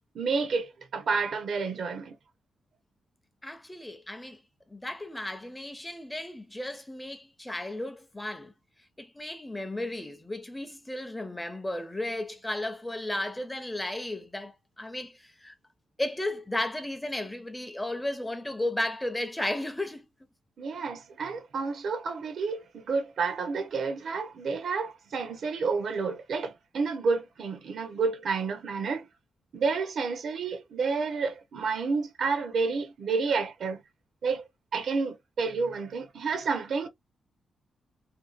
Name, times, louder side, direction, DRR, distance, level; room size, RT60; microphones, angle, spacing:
voice 1, 0.1-2.2 20.6-29.1 29.5-33.8 34.2-34.4 34.7-36.9, right 4 dB, 65° right, 0.6 m, -30 dB
voice 2, 3.4-4.4 4.7-8.5 9.0-15.5 16.0-20.1, left 1 dB, 10° left, 0.5 m, -34 dB
2.7 x 2.2 x 2.3 m
cardioid pair, 100°, 0 cm